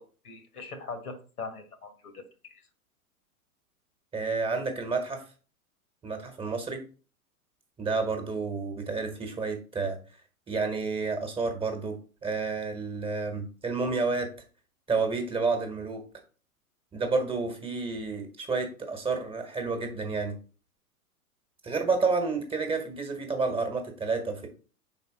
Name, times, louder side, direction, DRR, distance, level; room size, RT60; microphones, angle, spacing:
voice 1, 0.0-2.7, left 4 dB, 75° left, 9 dB, 1.4 m, -42 dB
voice 2, 4.1-5.2 6.0-6.8 7.8-10.0 10.5-12.0 12.2-14.3 14.9-16.0 16.9-20.3 21.6-24.5, right 4 dB, 10° right, 4 dB, 1.2 m, -30 dB
5.0 x 4.1 x 4.8 m, 0.37 s
figure-of-eight pair, 105°, 44 cm